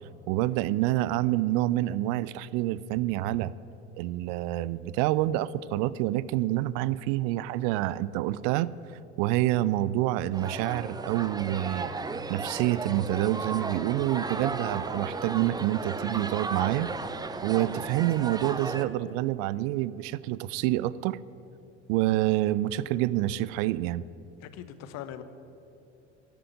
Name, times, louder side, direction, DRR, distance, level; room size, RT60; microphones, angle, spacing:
voice 1, 0.3-3.5 4.0-8.7 9.2-11.9 12.3-16.9 17.4-21.2 21.9-24.0, right 15 dB, 50° right, 19 dB, 0.5 m, -27 dB
sound 1, 10.3-18.8, right 3 dB, 10° right, 0.6 m, -35 dB
Bowed string instrument, 11.7-17.7, right 5 dB, 30° right, 1.3 m, -53 dB
voice 2, 24.4-25.2, left 11 dB, 50° left, 12 dB, 1.0 m, -41 dB
12.0 x 7.7 x 9.1 m, 2.7 s
figure-of-eight pair, 65°, 35 cm